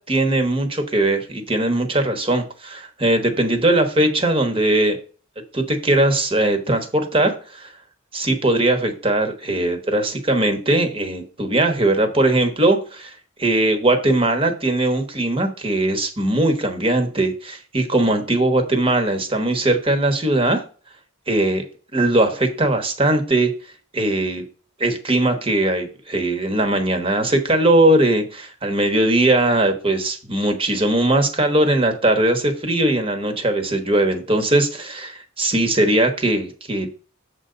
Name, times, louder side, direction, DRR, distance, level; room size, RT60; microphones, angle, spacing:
voice 1, 0.1-5.0 5.5-7.7 8.1-20.6 21.3-21.6 21.9-23.5 23.9-24.4 24.8-36.9, right 1 dB, 25° right, 5 dB, 1.2 m, -20 dB
7.4 x 3.9 x 6.7 m, 0.39 s
head